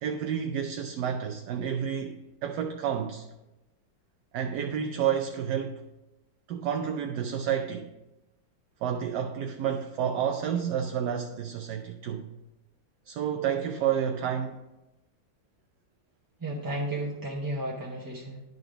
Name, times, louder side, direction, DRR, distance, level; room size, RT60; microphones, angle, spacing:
voice 1, 0.0-3.3 4.3-5.8 6.5-7.9 8.8-12.3 13.1-14.6, right 8 dB, 75° right, 1.1 m, -30 dB
voice 2, 16.4-18.4, right 1 dB, 20° right, 0.7 m, -33 dB
10.5 x 3.9 x 4.9 m
omnidirectional pair, 1.9 m